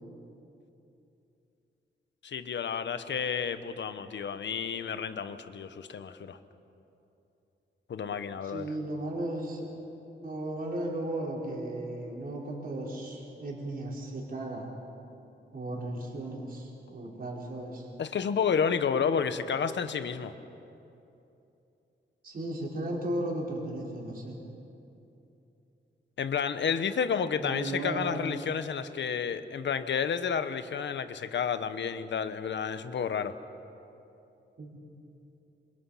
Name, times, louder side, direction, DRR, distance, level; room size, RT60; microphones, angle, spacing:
voice 1, 2.2-6.4 7.9-8.7 18.0-20.3 26.2-33.3, left 7 dB, 65° left, 10 dB, 1.2 m, -31 dB
voice 2, 8.4-9.7 10.2-14.7 15.5-17.9 22.2-24.4 27.4-28.4 34.6-34.8, right 1 dB, 50° right, -3 dB, 5.0 m, -35 dB
27.5 x 26.5 x 5.8 m, 2.9 s
wide cardioid pair, 145°, 20 cm